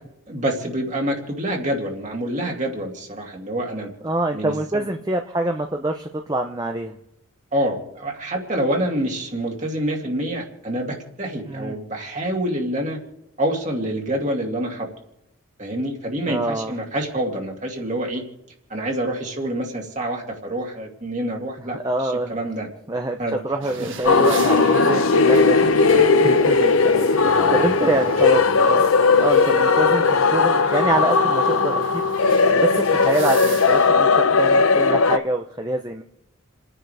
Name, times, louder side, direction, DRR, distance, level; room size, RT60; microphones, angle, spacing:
voice 1, 0.3-3.9 4.3-4.9 7.5-13.0 13.4-14.9 15.6-18.2 18.7-22.7 23.2-23.4 23.6-23.9 24.4-24.8 27.2-28.1 28.4-28.5, right 1 dB, 35° right, 0 dB, 2.6 m, -27 dB
voice 2, 4.0-7.0 11.5-11.8 16.3-16.8 21.6-22.4 22.9-28.4 28.7-28.9 29.2-32.0 32.3-36.0, right 2 dB, 20° right, 4 dB, 0.7 m, -26 dB
sound 1, 23.6-33.9, right 3 dB, 65° right, 1.6 m, -37 dB
sound 2, 24.0-35.2, left 4 dB, 85° left, 0.8 m, -17 dB
29.5 x 10.0 x 3.4 m, 0.85 s
head